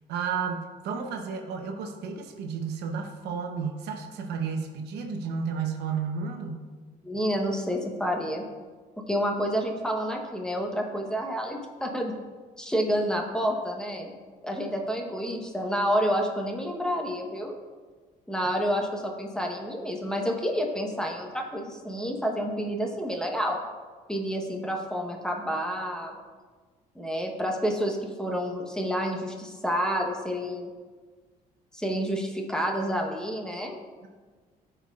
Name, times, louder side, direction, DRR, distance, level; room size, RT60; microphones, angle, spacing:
voice 1, 0.1-6.6, right 6 dB, 80° right, 5 dB, 0.8 m, -32 dB
voice 2, 7.0-8.5 9.1-12.1 12.6-14.1 14.4-17.5 18.3-23.6 24.1-26.2 26.9-30.7 31.7-33.8, equal, 5° left, 1 dB, 1.0 m, -29 dB
12.5 x 4.5 x 2.4 m, 1.4 s
cardioid pair, 110°, 17 cm